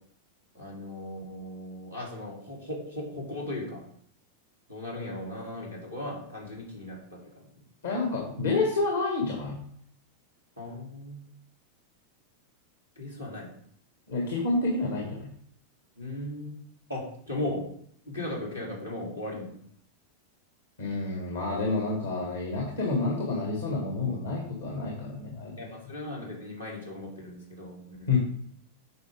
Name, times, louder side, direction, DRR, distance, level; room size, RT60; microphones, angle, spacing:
voice 1, 0.5-3.8 4.7-7.5 10.6-11.2 12.9-13.5 16.0-16.6 16.9-17.6 18.0-19.6 25.6-28.2, left 1 dB, 90° left, -5 dB, 3.2 m, -37 dB
voice 2, 7.8-9.6 14.1-15.3 20.8-25.5 28.1-28.4, left 3 dB, 70° left, -1 dB, 1.9 m, -29 dB
9.2 x 6.1 x 3.6 m, 0.65 s
figure-of-eight pair, 90°, 0 cm